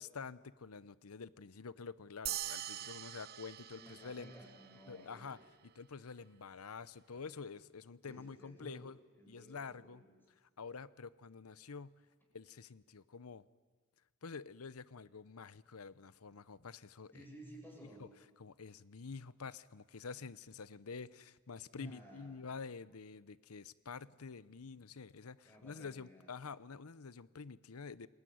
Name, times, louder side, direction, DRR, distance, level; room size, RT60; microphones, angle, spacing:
voice 1, 0.0-4.3 4.9-5.4 5.8-9.0 9.3-10.0 10.4-11.9 12.3-13.4 14.2-17.2 17.8-18.1 18.4-28.1, left 5 dB, 85° left, 18 dB, 0.8 m, -48 dB
sound 1, 2.3-5.0, right 12 dB, 45° right, 0.8 m, -44 dB
voice 2, 3.8-5.4 8.0-8.8 9.2-10.1 17.1-18.0 21.7-22.5 25.4-26.3, right 1 dB, 10° left, 0 dB, 6.8 m, -55 dB
28.5 x 20.5 x 9.5 m, 1.4 s
head